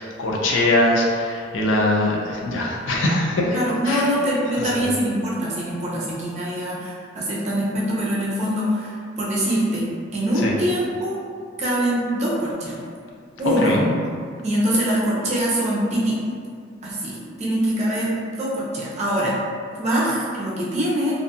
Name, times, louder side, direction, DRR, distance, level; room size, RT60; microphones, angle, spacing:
voice 1, 0.0-3.6 3.9-4.1 4.6-4.9 10.4-10.5 13.4-13.9, left 1 dB, 75° left, -2 dB, 0.5 m, -22 dB
voice 2, 3.5-9.9 10.1-11.2 11.6-12.8 13.4-13.8 14.4-16.2 16.8-19.3 19.8-21.2, equal, 35° right, -7 dB, 0.6 m, -23 dB
2.6 x 2.5 x 2.4 m, 2.1 s
head